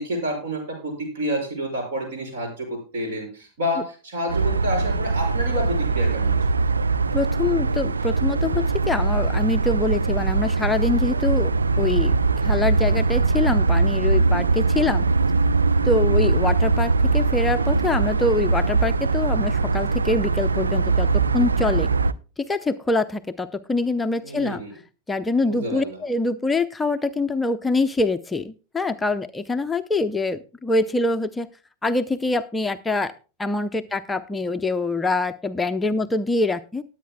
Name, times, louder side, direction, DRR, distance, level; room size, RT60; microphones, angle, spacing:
voice 1, 0.0-6.4 24.2-24.7 25.4-26.0, equal, 55° right, 3 dB, 5.8 m, -29 dB
sound 1, 4.3-22.1, right 3 dB, 75° right, 0.5 m, -21 dB
voice 2, 7.1-11.5 11.8-12.1 12.4-15.0 15.8-21.1 21.3-21.9 22.4-24.6 25.1-31.5 31.8-33.1 33.4-36.8, left 3 dB, 10° left, 9 dB, 0.6 m, -24 dB
19.5 x 8.7 x 2.2 m, 0.33 s
figure-of-eight pair, 90°, 0 cm